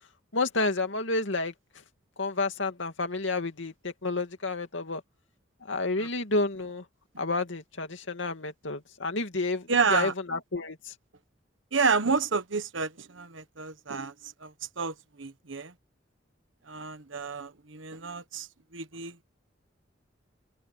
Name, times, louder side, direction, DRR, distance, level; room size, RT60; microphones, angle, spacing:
voice 1, 0.3-1.5 2.2-5.0 5.6-6.8 7.2-10.9, left 3 dB, 80° left, 2.5 m, -30 dB
voice 2, 9.7-10.1 11.7-14.1 14.4-15.7 16.7-18.5 18.7-19.2, right 5 dB, 85° right, 1.3 m, -29 dB
head